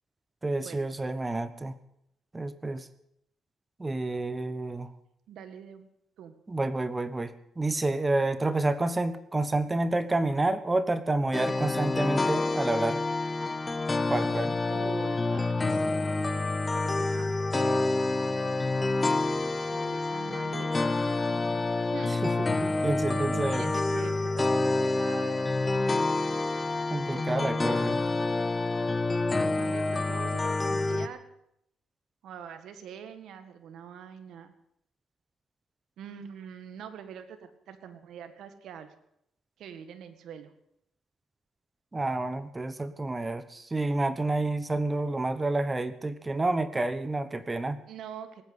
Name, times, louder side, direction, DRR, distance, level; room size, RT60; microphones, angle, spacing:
voice 1, 0.4-1.7 2.3-2.9 3.8-4.9 6.5-13.0 14.1-14.6 22.1-22.2 22.6-23.7 26.9-28.0 41.9-47.8, right 2 dB, 20° right, 13 dB, 1.1 m, -29 dB
voice 2, 5.3-5.8 6.2-6.4 14.7-15.9 16.7-17.9 19.7-21.0 21.9-22.2 23.1-26.2 27.1-27.9 29.3-31.2 32.2-34.5 36.0-38.9 39.6-40.5 47.9-48.4, right 8 dB, 75° right, 9 dB, 1.8 m, -44 dB
sound 1, 11.3-31.1, left 2 dB, 25° left, 1.1 m, -28 dB
19.0 x 9.3 x 8.2 m, 0.76 s
cardioid pair, 90°, 0 cm